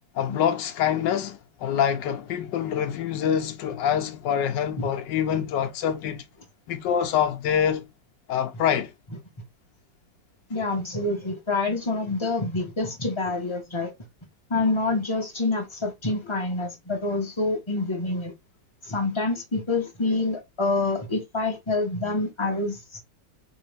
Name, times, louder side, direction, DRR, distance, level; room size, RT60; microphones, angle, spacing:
voice 1, 0.1-6.2 6.7-7.8 8.3-8.9, left 9 dB, 75° left, 1.3 m, -25 dB
voice 2, 10.5-13.9 14.5-18.3 18.8-23.0, left 2 dB, 30° left, 0.5 m, -27 dB
3.4 x 3.0 x 3.3 m
omnidirectional pair, 2.0 m